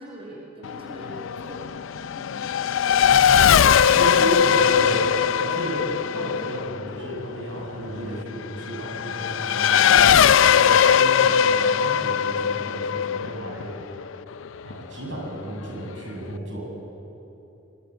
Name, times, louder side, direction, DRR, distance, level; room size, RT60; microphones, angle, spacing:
voice 1, 0.0-2.4, equal, 30° right, -2 dB, 5.2 m, -42 dB
Race car auto racing / Accelerating revving vroom, 0.6-14.7, left 8 dB, 90° left, 0.4 m, -20 dB
voice 2, 3.1-13.7 14.6-16.9, right 1 dB, 75° right, -1 dB, 7.1 m, -33 dB
23.5 x 22.5 x 7.7 m, 2.9 s
head